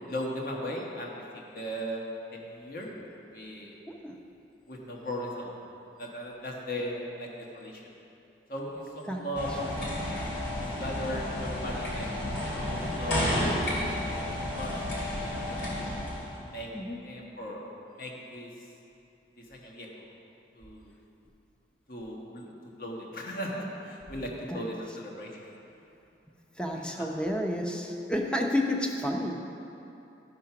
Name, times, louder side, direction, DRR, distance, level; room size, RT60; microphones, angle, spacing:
voice 1, 0.1-2.0 2.3-2.9 3.3-3.8 4.7-5.5 6.0-7.9 8.5-10.2 10.6-12.1 12.4-13.6 14.0-15.9 16.3-16.7 17.0-17.6 18.0-18.5 19.4-19.9 20.5-20.9 21.9-25.3 26.7-27.1, equal, 55° left, -2 dB, 1.4 m, -38 dB
voice 2, 3.9-4.2 9.1-9.2 16.7-17.0 24.5-24.6 26.6-29.3, left 1 dB, 5° left, 1 dB, 0.7 m, -30 dB
sound 1, 9.3-16.4, left 1 dB, 80° left, 2.6 m, -31 dB
13.0 x 5.7 x 5.9 m, 2.8 s
head